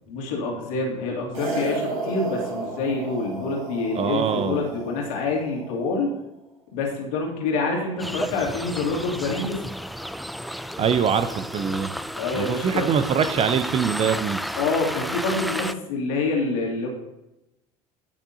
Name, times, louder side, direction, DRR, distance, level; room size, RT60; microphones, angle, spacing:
voice 1, 0.1-6.1 6.7-9.6 12.2-12.9 14.6-16.9, left 3 dB, 65° left, -2 dB, 2.7 m, -26 dB
sound 1, 1.3-5.8, right 3 dB, 75° right, 3.4 m, -33 dB
voice 2, 4.0-4.7 10.8-11.9 12.3-14.4, right 7 dB, 35° right, 11 dB, 0.7 m, -23 dB
sound 2, 8.0-15.7, equal, ahead, 0.3 m, -32 dB
16.5 x 6.1 x 2.8 m, 0.94 s
figure-of-eight pair, 65°, 19 cm